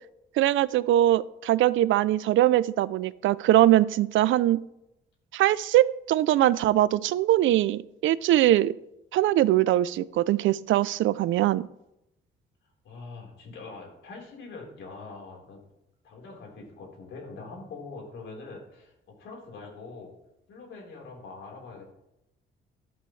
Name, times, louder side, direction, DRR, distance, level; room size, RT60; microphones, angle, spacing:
voice 1, 0.4-4.6 5.3-8.7 9.1-11.7, right 14 dB, 80° right, 18 dB, 0.5 m, -22 dB
voice 2, 12.8-15.6 16.0-20.1 20.5-21.9, left 3 dB, 75° left, -1 dB, 4.2 m, -43 dB
12.0 x 11.5 x 3.3 m, 0.85 s
cardioid pair, 90°, 20 cm